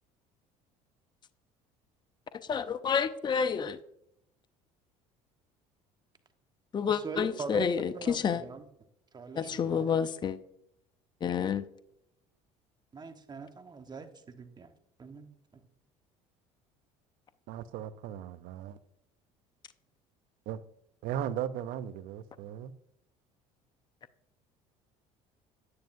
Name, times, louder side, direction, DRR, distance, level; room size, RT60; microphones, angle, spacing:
voice 1, 2.5-3.8 6.7-8.4 9.4-10.4 11.2-11.6, left 7 dB, 30° left, 0.6 m, -29 dB
voice 2, 6.9-8.6 9.1-9.9 12.9-14.7 15.0-15.6, right 4 dB, 30° right, 1.2 m, -42 dB
voice 3, 17.5-18.8 20.5-20.6 21.0-22.7, right 10 dB, 70° right, 0.6 m, -37 dB
10.0 x 9.6 x 2.6 m
supercardioid pair, 85°, 15 cm